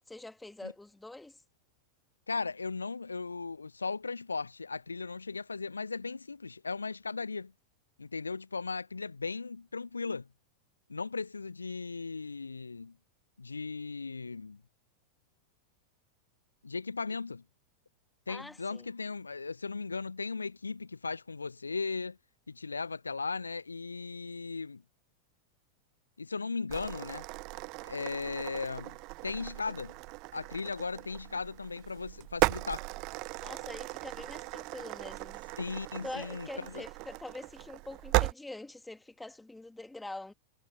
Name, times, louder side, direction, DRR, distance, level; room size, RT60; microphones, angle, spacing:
voice 1, 0.1-1.4 18.3-18.9 33.4-35.4 36.0-40.3, left 2 dB, 5° left, 2.4 m, -44 dB
voice 2, 2.3-7.5 8.0-10.3 10.9-12.9 13.4-14.6 16.6-17.4 18.3-22.2 22.5-24.8 26.2-27.2 27.8-29.0 29.2-29.9 30.3-32.8 35.6-36.8, left 4 dB, 75° left, 0.7 m, -37 dB
sound 1, 26.7-38.3, right 26 dB, 40° right, 0.8 m, -36 dB
figure-of-eight pair, 90°, 0 cm